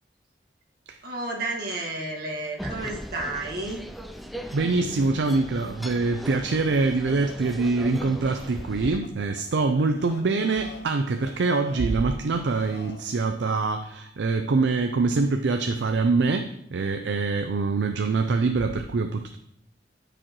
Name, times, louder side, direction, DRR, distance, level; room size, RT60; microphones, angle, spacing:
voice 1, 1.0-3.8, right 2 dB, 60° right, -1 dB, 1.7 m, -31 dB
sound 1, 2.6-9.0, equal, ahead, 0.4 m, -38 dB
voice 2, 4.5-19.4, right 3 dB, 75° right, 6 dB, 0.5 m, -24 dB
sound 2, 6.3-13.1, left 2 dB, 70° left, 1.0 m, -46 dB
12.0 x 5.0 x 3.0 m, 0.74 s
head